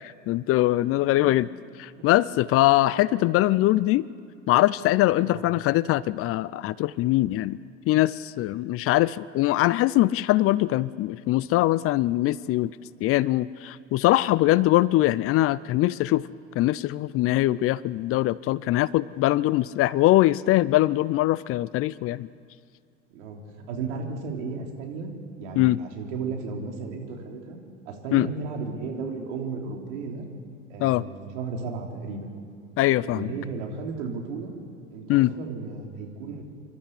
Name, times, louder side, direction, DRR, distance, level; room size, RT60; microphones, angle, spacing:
voice 1, 0.0-1.5 1.8-4.0 4.5-7.6 7.9-12.7 13.0-16.3 16.6-22.3 25.6-25.8 28.1-28.3 30.8-31.0 32.8-33.3 35.1-35.3, left 16 dB, 40° left, 20 dB, 0.5 m, -22 dB
voice 2, 23.7-25.1 25.4-27.6 27.8-30.3 30.7-32.3 33.1-34.5 34.9-36.5, right 4 dB, 70° right, 1 dB, 3.4 m, -34 dB
26.5 x 12.5 x 8.3 m, 2.3 s
hypercardioid pair, 85°, 36 cm